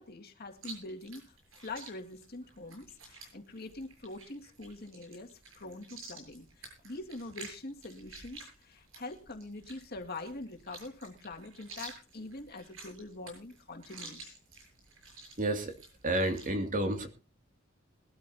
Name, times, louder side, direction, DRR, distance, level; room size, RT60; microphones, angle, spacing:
voice 1, 0.0-14.4, left 2 dB, 50° left, 3 dB, 2.1 m, -44 dB
Chewing mastication, 0.6-16.5, right 3 dB, 85° right, 7.6 m, -51 dB
voice 2, 15.4-15.7 16.0-17.1, right 1 dB, 40° right, 6 dB, 2.4 m, -30 dB
21.5 x 13.0 x 2.8 m, 0.32 s
head